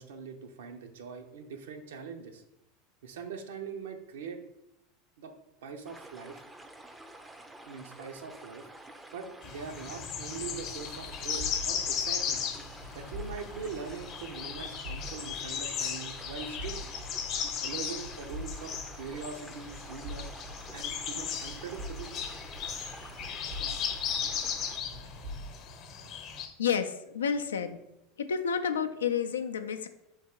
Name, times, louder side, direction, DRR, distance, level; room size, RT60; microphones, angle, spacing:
voice 1, 0.0-2.4 3.0-4.4 5.2-5.3 5.6-6.4 7.7-8.7 9.1-12.5 12.9-16.8 17.6-20.3 20.7-22.2, right 5 dB, 65° right, 6 dB, 0.6 m, -42 dB
sound 1, 5.9-24.8, right 2 dB, 10° right, 0.4 m, -50 dB
sound 2, 9.4-26.5, left 7 dB, 45° left, 0.8 m, -36 dB
sound 3, 10.3-25.5, equal, 85° right, 1.4 m, -46 dB
voice 2, 26.6-27.8 28.2-29.9, left 7 dB, 75° left, 8 dB, 0.3 m, -30 dB
3.6 x 2.8 x 4.4 m, 0.82 s
figure-of-eight pair, 80°, 0 cm